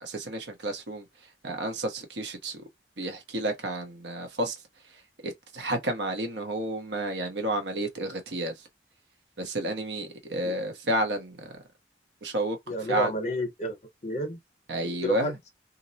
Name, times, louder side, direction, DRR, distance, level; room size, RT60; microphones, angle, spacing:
voice 1, 0.0-1.1 1.4-2.6 3.0-4.5 5.2-8.5 9.4-11.5 12.2-12.6 12.9-13.1 14.7-15.3, right 1 dB, 75° right, 0.8 m, -31 dB
voice 2, 12.7-13.8 14.0-14.4 14.8-15.3, equal, 40° left, 0.7 m, -30 dB
2.6 x 2.0 x 2.6 m
head